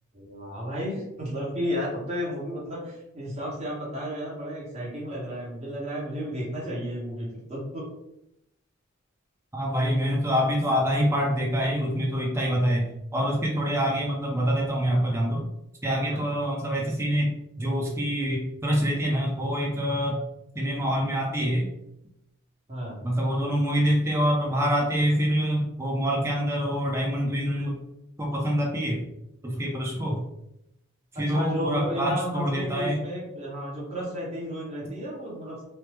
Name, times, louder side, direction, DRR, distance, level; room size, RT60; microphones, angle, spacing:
voice 1, 0.1-7.9 16.1-16.3 22.7-23.1 31.1-35.6, equal, 30° right, -6 dB, 1.0 m, -33 dB
voice 2, 9.5-15.5 15.8-20.2 20.5-21.7 23.0-27.8 28.2-29.0 29.4-30.2 31.1-33.0, equal, 10° right, -2 dB, 0.4 m, -26 dB
3.2 x 2.0 x 3.1 m, 0.84 s
head